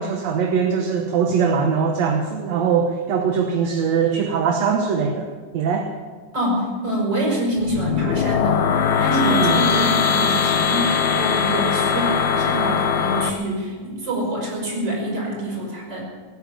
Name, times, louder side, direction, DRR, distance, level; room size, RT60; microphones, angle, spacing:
voice 1, 0.0-5.9 9.2-9.6, right 6 dB, 65° right, 3 dB, 2.1 m, -21 dB
voice 2, 6.3-8.6 9.0-16.0, right 1 dB, 30° right, -3 dB, 6.2 m, -25 dB
sound 1, 7.6-13.3, left 7 dB, 70° left, 2.1 m, -20 dB
18.0 x 11.0 x 7.4 m, 1.5 s
omnidirectional pair, 3.8 m